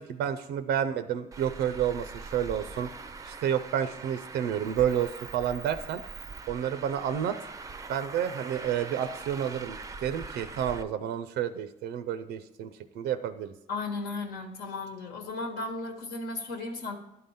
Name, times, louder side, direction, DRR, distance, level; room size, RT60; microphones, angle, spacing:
voice 1, 0.0-2.9 3.2-6.0 6.5-7.4 7.9-13.5, right 9 dB, 80° right, 11 dB, 0.5 m, -30 dB
Traffic noise roadway noise, 1.3-10.8, right 4 dB, 20° right, 0.5 m, -43 dB
voice 2, 13.7-17.0, left 3 dB, 75° left, 3 dB, 1.2 m, -35 dB
11.0 x 3.8 x 5.6 m, 0.90 s
cardioid pair, 110°, 17 cm